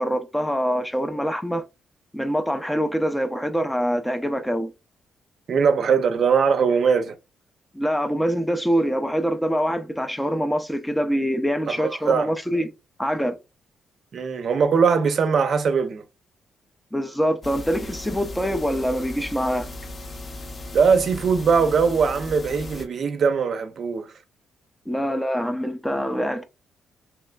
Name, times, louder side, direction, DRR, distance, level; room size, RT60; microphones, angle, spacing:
voice 1, 0.0-1.6 2.1-4.7 7.7-12.7 13.0-13.4 16.9-19.7 24.9-26.4, equal, 5° left, 0.4 m, -24 dB
voice 2, 5.5-7.1 11.7-12.3 14.1-16.0 20.7-24.1, right 6 dB, 55° right, 0.5 m, -21 dB
sound 1, 17.4-22.8, left 2 dB, 40° left, 0.7 m, -37 dB
3.2 x 3.0 x 2.2 m
cardioid pair, 130°, 0 cm